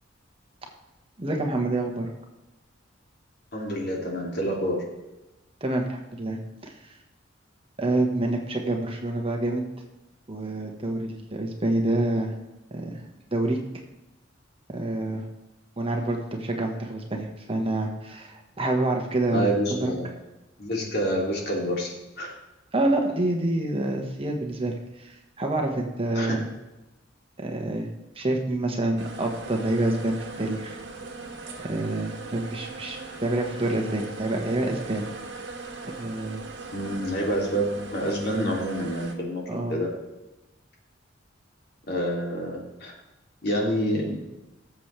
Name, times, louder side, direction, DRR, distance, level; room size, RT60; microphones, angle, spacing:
voice 1, 1.2-2.1 5.6-7.0 7.8-9.6 10.3-12.3 12.7-13.0 13.3-13.6 14.7-15.2 15.8-19.5 19.8-19.9 22.7-26.4 27.4-27.9 28.1-30.8 31.6-35.0 36.0-36.4 39.5-39.8, right 2 dB, 30° right, 2 dB, 1.5 m, -27 dB
voice 2, 3.5-4.8 19.3-20.1 20.6-21.9 22.2-22.3 26.1-26.4 36.7-39.4 39.7-39.9 41.9-42.9 43.4-44.2, equal, 55° left, -1 dB, 2.9 m, -27 dB
sound 1, 29.0-39.1, right 3 dB, 65° right, 1.7 m, -39 dB
17.5 x 7.6 x 3.4 m, 1.0 s
head